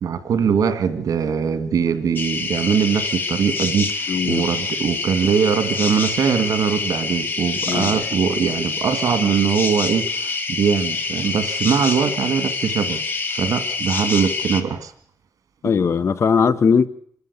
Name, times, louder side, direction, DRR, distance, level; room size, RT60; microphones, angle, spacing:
voice 1, 0.0-13.0 13.3-14.9, right 7 dB, 90° right, 2.2 m, -21 dB
sound 1, 2.2-14.6, left 4 dB, 35° left, 1.8 m, -26 dB
voice 2, 4.1-4.4 7.7-8.0 15.6-16.9, left 6 dB, 50° left, 1.1 m, -19 dB
26.0 x 13.0 x 8.2 m
wide cardioid pair, 155°, 6 cm